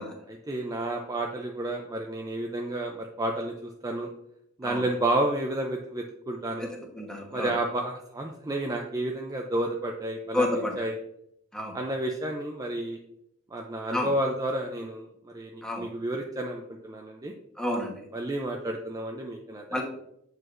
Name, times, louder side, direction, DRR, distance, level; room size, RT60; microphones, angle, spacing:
voice 1, 0.3-4.1 4.6-6.7 7.3-11.0 11.7-13.0 13.5-17.3 18.1-19.8, right 1 dB, 15° right, 1 dB, 0.4 m, -31 dB
voice 2, 7.0-7.5 10.3-10.7 11.5-11.7 13.9-14.1 15.6-15.8 17.6-17.9 19.7-19.8, left 1 dB, 5° left, 0 dB, 1.1 m, -29 dB
7.8 x 4.8 x 2.5 m, 0.74 s
head